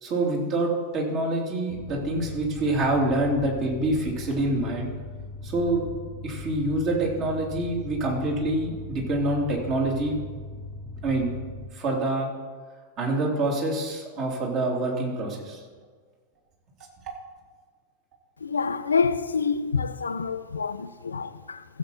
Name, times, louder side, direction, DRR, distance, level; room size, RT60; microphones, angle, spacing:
voice 1, 0.0-4.9 5.4-5.9 6.2-10.2 11.0-11.3 11.7-12.3 13.0-15.6, right 2 dB, 35° right, 3.1 m, -26 dB
sound 1, 1.7-11.7, left 3 dB, 35° left, 0.9 m, -39 dB
voice 2, 18.4-21.6, left 5 dB, 75° left, 0.4 m, -27 dB
15.5 x 7.8 x 4.2 m
figure-of-eight pair, 90°, 0 cm